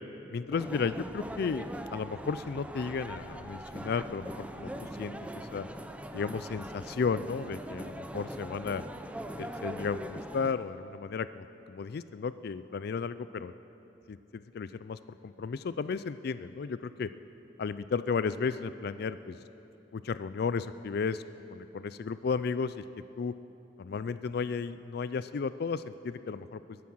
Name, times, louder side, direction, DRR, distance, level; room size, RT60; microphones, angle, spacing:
voice 1, 0.3-1.7 1.9-5.7 6.1-8.8 9.4-13.5 14.1-17.1 17.6-19.4 19.9-21.2 21.5-22.8 23.2-23.3 23.8-26.8, left 5 dB, 60° left, 14 dB, 0.4 m, -34 dB
sound 1, 0.5-10.5, right 1 dB, 5° right, 0.6 m, -41 dB
22.0 x 9.5 x 6.2 m, 2.8 s
head